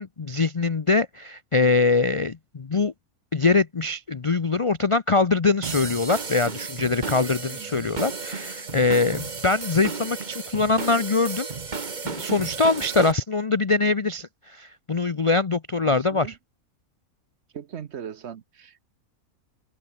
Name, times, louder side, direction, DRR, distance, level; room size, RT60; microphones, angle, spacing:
voice 1, 0.0-2.9 3.3-11.5 12.0-16.3, left 3 dB, 45° left, 0.4 m, -23 dB
sound 1, 5.6-13.1, right 4 dB, 30° right, 1.4 m, -33 dB
voice 2, 15.8-16.3 17.5-18.8, right 8 dB, 55° right, 0.9 m, -39 dB
open air
omnidirectional pair, 1.5 m